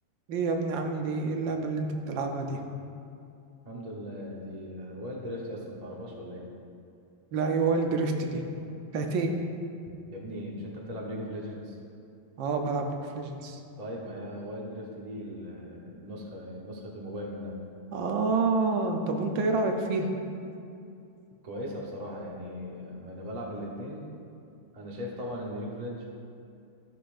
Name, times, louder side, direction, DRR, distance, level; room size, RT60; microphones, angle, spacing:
voice 1, 0.3-2.6 7.3-8.4 8.9-9.3 12.4-13.6 17.9-20.1, right 3 dB, 70° right, 3 dB, 1.4 m, -28 dB
voice 2, 3.6-6.4 10.1-11.8 13.8-17.6 21.4-24.0 24.7-26.0, equal, 35° right, -3 dB, 0.6 m, -38 dB
14.0 x 6.7 x 2.5 m, 2.5 s
omnidirectional pair, 2.3 m